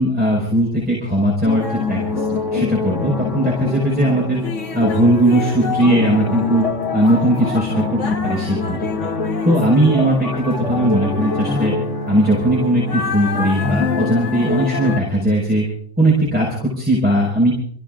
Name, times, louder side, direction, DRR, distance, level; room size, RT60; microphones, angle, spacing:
voice 1, 0.0-4.4 4.7-6.7 6.9-9.1 9.4-11.7 12.1-15.7 16.0-17.5, right 1 dB, 5° right, -5 dB, 5.3 m, -18 dB
sound 1, 1.5-15.0, left 3 dB, 60° left, 1.6 m, -24 dB
29.0 x 16.0 x 2.6 m, 0.62 s
omnidirectional pair, 1.4 m